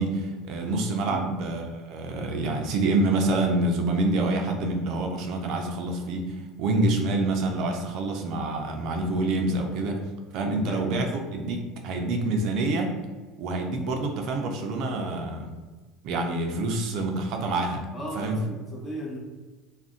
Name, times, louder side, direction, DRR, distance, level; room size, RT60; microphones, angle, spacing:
voice 1, 0.0-10.0 10.3-11.1 11.3-13.0 13.4-15.5 16.0-17.8 18.1-18.4, right 2 dB, 55° right, 3 dB, 0.4 m, -27 dB
voice 2, 1.0-1.3 10.5-11.1 17.9-19.2, equal, 20° left, -3 dB, 0.8 m, -36 dB
2.4 x 2.1 x 3.6 m, 1.3 s
supercardioid pair, 130°, 0 cm